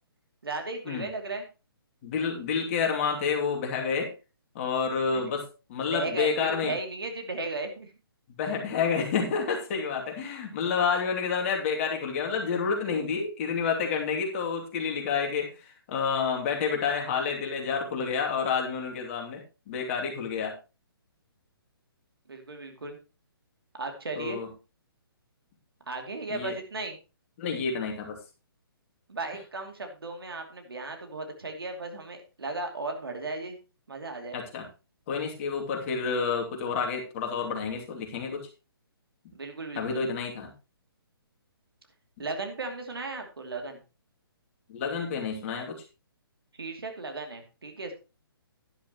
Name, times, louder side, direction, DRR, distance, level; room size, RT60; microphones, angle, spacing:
voice 1, 0.4-1.5 5.1-5.4 5.9-7.9 22.3-23.0 23.8-24.4 25.9-27.0 29.1-33.6 33.9-34.4 39.3-40.0 42.2-43.8 46.6-47.9, right 3 dB, 70° right, 4 dB, 2.7 m, -36 dB
voice 2, 2.0-4.1 4.5-5.4 5.7-6.8 8.4-20.5 24.2-24.5 26.3-26.5 27.4-28.2 34.3-34.7 35.1-38.5 39.7-40.5 44.7-45.8, left 5 dB, 35° left, 1 dB, 2.6 m, -29 dB
11.5 x 11.0 x 3.0 m, 0.30 s
figure-of-eight pair, 135°, 13 cm